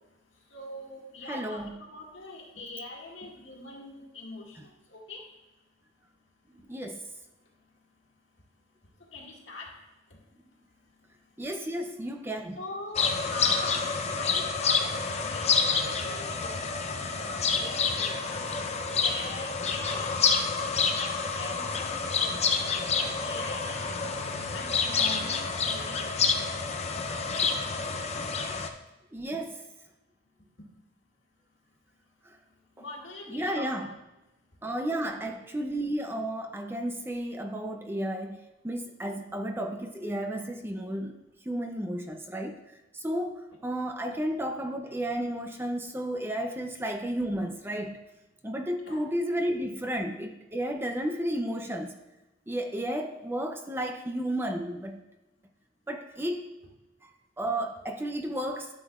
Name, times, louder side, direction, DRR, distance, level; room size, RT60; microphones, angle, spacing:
voice 1, 0.5-4.6 4.9-5.2 9.1-9.7 12.6-13.9 14.2-18.4 19.0-21.1 21.4-24.1 24.5-26.0 32.8-33.8 48.8-49.0, left 2 dB, 70° left, -2 dB, 1.9 m, -42 dB
voice 2, 1.3-1.7 6.7-7.0 11.4-12.6 29.1-29.5 33.3-33.9 34.6-38.4 38.6-41.2 41.5-42.6 42.9-43.3 43.6-48.0 48.4-52.0 52.5-55.0 55.9-56.4 57.4-58.7, right 1 dB, 10° right, 5 dB, 0.5 m, -32 dB
sound 1, 12.9-28.7, left 5 dB, 35° left, 0.6 m, -28 dB
12.0 x 7.3 x 2.4 m, 1.0 s
head